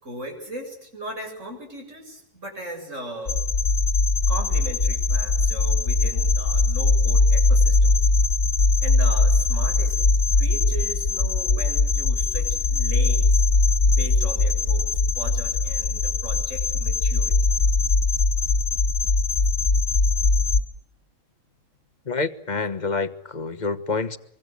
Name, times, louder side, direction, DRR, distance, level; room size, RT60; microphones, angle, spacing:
voice 1, 0.0-3.5 4.3-7.9 8.8-9.9 10.3-13.4 13.9-17.3, right 1 dB, 70° right, 7.9 m, -38 dB
sound 1, 3.3-20.6, left 3 dB, 55° left, 1.6 m, -21 dB
voice 2, 22.1-24.2, left 4 dB, 35° left, 1.3 m, -27 dB
24.5 x 24.5 x 8.0 m
omnidirectional pair, 1.3 m